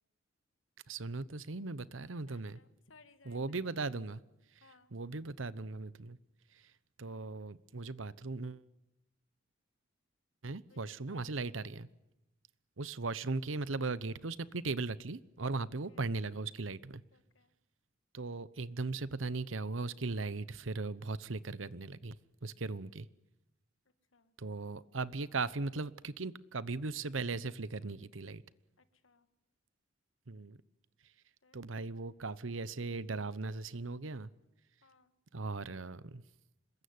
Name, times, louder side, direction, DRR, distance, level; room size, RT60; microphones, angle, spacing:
voice 1, 0.9-2.6 3.2-4.2 4.9-6.2 7.0-8.6 10.4-11.9 12.8-17.0 18.1-22.2 22.4-23.1 24.4-28.4 30.3-30.6 31.5-34.3 35.3-36.2, right 3 dB, 75° right, 17 dB, 1.0 m, -38 dB
voice 2, 2.3-3.4 3.7-3.8 4.6-4.9 10.7-11.2 15.9-16.0 17.1-17.5 24.1-24.3 29.0-29.3 31.4-31.6 34.8-35.1, left 4 dB, 80° left, 10 dB, 1.9 m, -64 dB
26.5 x 21.5 x 9.6 m, 0.93 s
head